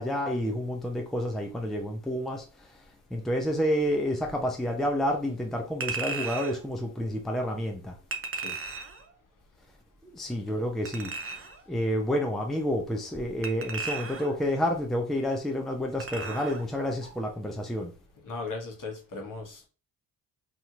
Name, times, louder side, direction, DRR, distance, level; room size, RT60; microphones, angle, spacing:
voice 1, 0.0-2.7 3.1-7.9 10.0-11.2 11.7-17.9, equal, ahead, 0.6 m, -29 dB
Chink clink, 5.8-6.6 8.1-9.0 10.9-11.6 13.4-14.4 16.0-16.6 17.0-17.1, right 4 dB, 30° right, 0.7 m, -35 dB
voice 2, 18.2-19.7, left 3 dB, 45° left, 1.3 m, -37 dB
3.0 x 2.7 x 2.5 m
supercardioid pair, 50°, 44 cm